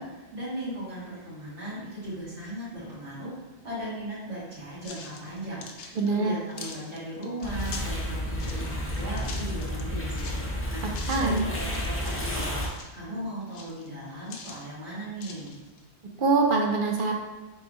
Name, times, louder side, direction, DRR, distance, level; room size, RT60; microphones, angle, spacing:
voice 1, 0.0-3.3 3.6-12.6 12.9-15.6, right 1 dB, 80° right, -9 dB, 1.8 m, -37 dB
sound 1, 4.8-8.0 8.3-10.4 10.9-11.4 11.7-13.0 13.4-14.7 15.2-15.8, left 4 dB, 65° left, 0.8 m, -43 dB
voice 2, 6.0-6.3 11.1-11.4 16.2-17.1, right 3 dB, 55° right, 0 dB, 0.6 m, -23 dB
sound 2, 7.4-12.7, equal, 15° left, 0.4 m, -31 dB
4.6 x 3.6 x 2.6 m, 1.2 s
omnidirectional pair, 1.2 m